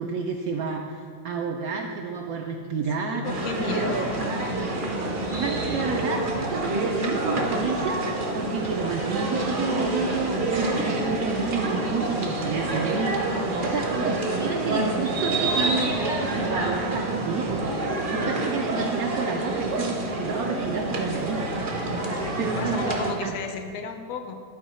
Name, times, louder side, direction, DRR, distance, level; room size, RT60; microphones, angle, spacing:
voice 1, 0.0-3.3 3.7-4.1 5.3-21.4 21.9-22.9 23.2-23.3, right 5 dB, 80° right, 2 dB, 0.8 m, -30 dB
voice 2, 3.0-4.2 22.1-24.3, left 5 dB, 60° left, 6 dB, 1.0 m, -34 dB
sound 1, 3.2-23.1, right 2 dB, 50° right, 0.6 m, -27 dB
11.0 x 4.6 x 4.3 m, 2.2 s
omnidirectional pair, 2.1 m